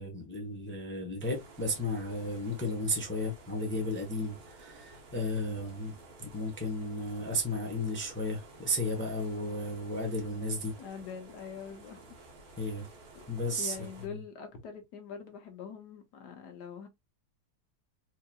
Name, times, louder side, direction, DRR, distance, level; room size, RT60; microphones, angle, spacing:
voice 1, 0.0-5.9 6.2-10.8 12.6-12.9 13.3-13.8 14.1-14.2, left 1 dB, 10° left, 0.7 m, -34 dB
sound 1, 1.2-14.1, right 3 dB, 65° right, 1.6 m, -53 dB
voice 2, 10.8-12.2 13.2-13.3 13.6-16.9, left 6 dB, 85° left, 1.6 m, -44 dB
4.5 x 2.9 x 2.3 m
omnidirectional pair, 1.7 m